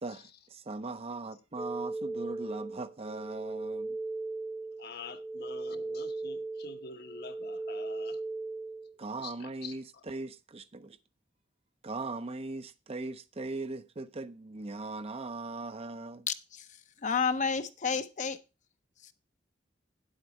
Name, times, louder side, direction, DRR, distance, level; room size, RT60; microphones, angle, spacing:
voice 1, 0.0-4.0 9.0-11.0 11.8-16.3, right 3 dB, 35° right, 0.6 m, -39 dB
sound 1, 1.6-8.9, right 3 dB, ahead, 0.8 m, -38 dB
voice 2, 4.8-8.2 9.2-9.7, left 4 dB, 60° left, 1.0 m, -46 dB
voice 3, 16.3-16.7 17.0-18.4, left 5 dB, 40° left, 0.7 m, -30 dB
9.5 x 8.1 x 4.2 m
head